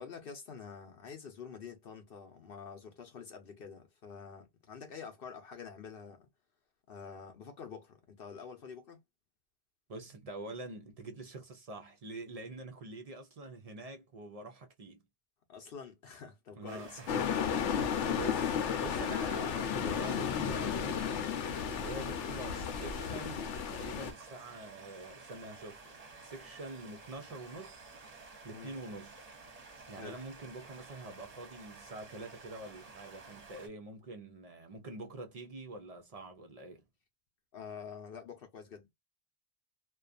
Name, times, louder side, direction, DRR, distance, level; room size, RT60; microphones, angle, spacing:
voice 1, 0.0-6.3 6.9-9.0 15.5-17.3 28.5-28.7 30.0-30.2 37.5-38.9, left 6 dB, 60° left, 0.8 m, -47 dB
voice 2, 9.9-15.0 16.6-17.1 17.7-21.4 21.8-25.9 26.2-27.9 28.2-36.8, right 2 dB, 55° right, 0.4 m, -46 dB
sound 1, 16.7-33.7, right 3 dB, 40° right, 0.8 m, -52 dB
sound 2, 17.1-24.1, left 7 dB, 85° left, 0.9 m, -33 dB
2.4 x 2.2 x 2.4 m
omnidirectional pair, 1.2 m